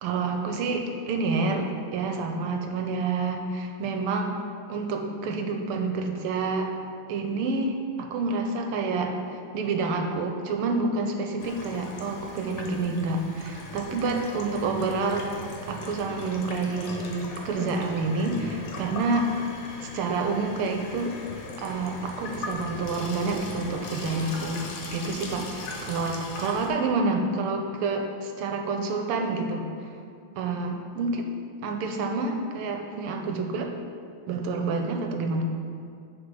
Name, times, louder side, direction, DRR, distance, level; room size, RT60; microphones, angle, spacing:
voice 1, 0.0-4.4 4.7-6.7 7.1-15.3 15.7-19.3 19.8-21.2 21.6-29.9 30.4-31.3 31.6-33.7 34.3-35.4, right 3 dB, 85° right, 3 dB, 1.7 m, -28 dB
Water tap faucet / Sink (filling or washing), 11.4-26.7, left 2 dB, 65° left, 1.6 m, -39 dB
9.7 x 3.8 x 5.4 m, 2.4 s
omnidirectional pair, 2.4 m